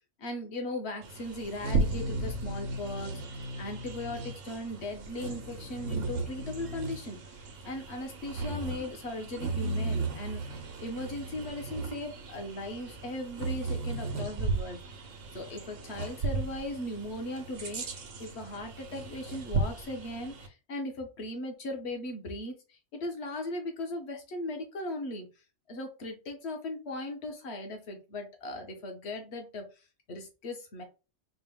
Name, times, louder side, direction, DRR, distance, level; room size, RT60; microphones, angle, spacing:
voice 1, 0.2-14.8 15.3-25.3 25.7-29.7 30.1-30.8, left 1 dB, 60° left, 4 dB, 1.3 m, -38 dB
Bird vocalization bird call bird song, 1.0-20.5, right 3 dB, 85° right, 1.2 m, -35 dB
4.3 x 2.2 x 3.5 m, 0.31 s
omnidirectional pair, 1.3 m